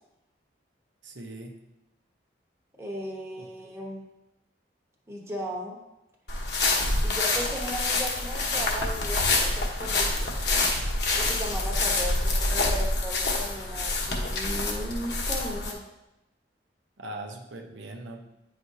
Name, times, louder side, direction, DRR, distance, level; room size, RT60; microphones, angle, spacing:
voice 1, 1.0-1.5 3.4-3.5 17.0-18.2, right 1 dB, 80° right, 1 dB, 0.8 m, -40 dB
voice 2, 2.8-4.0 5.1-5.8 7.0-10.3 11.1-15.8, equal, 15° right, -2 dB, 1.0 m, -36 dB
sound 1, 6.3-15.7, left 2 dB, 60° left, 1.1 m, -27 dB
9.4 x 5.1 x 2.7 m, 0.92 s
head